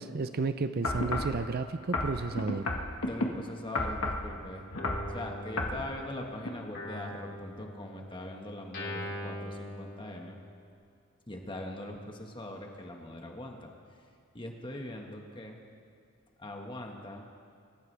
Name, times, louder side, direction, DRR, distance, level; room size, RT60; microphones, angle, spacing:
voice 1, 0.0-2.7, right 3 dB, 45° right, 10 dB, 0.5 m, -32 dB
sound 1, 0.8-1.4 1.9-3.3 3.7-4.3 4.7-5.1 5.6-5.8 6.4-6.5, left 2 dB, 70° left, 1.6 m, -31 dB
voice 2, 3.0-10.4 11.3-13.7 14.3-15.6 16.4-17.3, left 1 dB, 20° left, 1 dB, 1.6 m, -42 dB
Guitar, 4.7-6.3 6.7-10.6, equal, 50° left, 3.7 m, -42 dB
26.5 x 14.5 x 3.4 m, 2.4 s
head